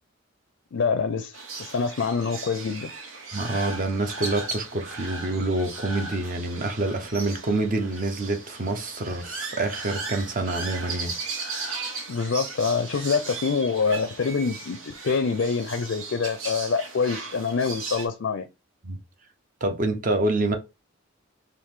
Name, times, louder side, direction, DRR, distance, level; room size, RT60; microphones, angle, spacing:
voice 1, 0.7-2.9 12.1-18.5, left 5 dB, 65° left, 0.4 m, -26 dB
sound 1, 1.3-18.1, right 3 dB, 85° right, 1.1 m, -37 dB
voice 2, 3.3-11.1 18.8-19.0 19.6-20.6, right 2 dB, 40° right, 0.7 m, -27 dB
4.7 x 2.5 x 3.6 m
head